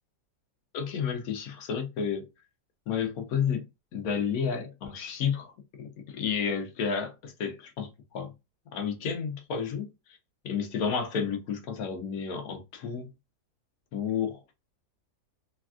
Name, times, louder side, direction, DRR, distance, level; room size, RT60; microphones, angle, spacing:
voice 1, 0.7-2.3 2.9-3.6 3.9-5.5 5.8-8.3 8.7-9.9 10.4-13.1 13.9-14.4, left 7 dB, 70° left, 1.1 m, -31 dB
3.3 x 2.3 x 2.3 m
omnidirectional pair, 1.7 m